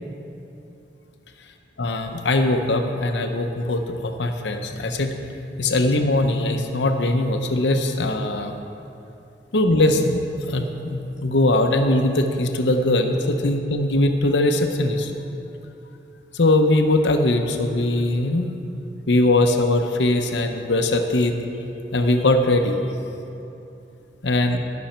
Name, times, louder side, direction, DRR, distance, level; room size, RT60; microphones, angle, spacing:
voice 1, 1.8-5.2 5.6-8.5 9.5-15.1 16.3-18.5 19.1-21.4 21.9-22.8 24.2-24.6, left 2 dB, 85° left, 5 dB, 0.8 m, -21 dB
15.5 x 6.2 x 4.4 m, 2.8 s
head